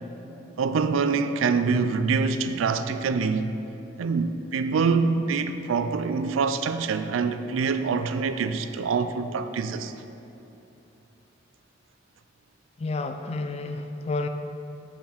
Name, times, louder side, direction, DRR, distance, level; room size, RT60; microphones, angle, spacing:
voice 1, 0.6-3.5 4.0-9.9, right 5 dB, 85° right, 0.4 m, -25 dB
voice 2, 12.8-14.3, left 3 dB, 30° left, 0.3 m, -30 dB
6.9 x 5.9 x 4.3 m
head